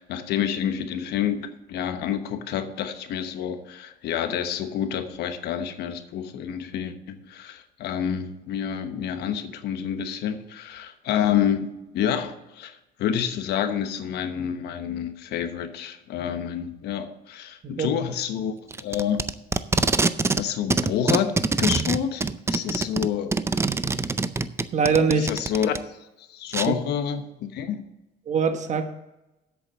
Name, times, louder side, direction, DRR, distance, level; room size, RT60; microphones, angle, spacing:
voice 1, 0.0-11.7 11.9-18.5 18.8-19.2 20.3-23.4 25.1-27.8, left 9 dB, 75° left, 9 dB, 1.1 m, -28 dB
Packing tape duct tape, 18.7-20.4 20.7-25.8 26.5-26.7, right 3 dB, 15° right, 0.5 m, -24 dB
voice 2, 24.7-25.3 28.3-28.9, right 5 dB, 45° right, 7 dB, 1.3 m, -22 dB
8.1 x 7.0 x 7.6 m, 0.97 s
cardioid pair, 110°, 17 cm